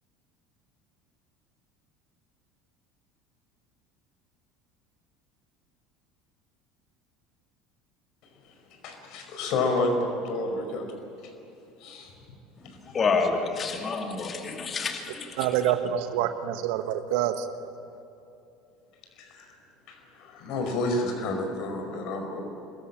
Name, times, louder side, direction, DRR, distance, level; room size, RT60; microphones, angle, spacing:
voice 1, 8.5-11.3 11.8-12.1 12.6-12.8 19.2-19.5 19.9-22.4, left 2 dB, 50° left, 4 dB, 5.2 m, -30 dB
voice 2, 12.9-15.4, left 4 dB, 30° left, 3 dB, 2.5 m, -28 dB
voice 3, 15.4-17.5, right 11 dB, 55° right, 10 dB, 1.3 m, -27 dB
26.5 x 21.5 x 8.8 m, 2.8 s
figure-of-eight pair, 65°, 0 cm